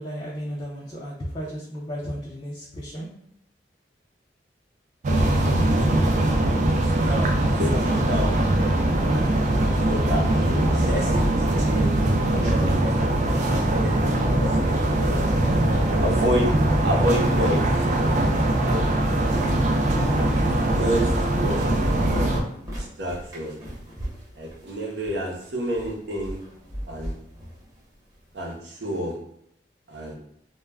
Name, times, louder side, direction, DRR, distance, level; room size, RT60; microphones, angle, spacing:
voice 1, 0.0-3.1, equal, 30° left, -6 dB, 0.5 m, -34 dB
sound 1, 5.0-22.4, right 1 dB, 40° right, 0.3 m, -21 dB
voice 2, 6.8-8.5 8.7-12.0 12.3-13.0 13.5-15.2 15.9-16.5 16.8-18.8 20.7-22.4 22.8-23.6 24.3-26.4 26.9-27.2 28.3-29.1 29.9-30.1, equal, 70° right, 0 dB, 0.7 m, -30 dB
sound 2, 21.5-28.6, equal, 20° right, 0.8 m, -40 dB
2.2 x 2.1 x 3.3 m, 0.72 s
head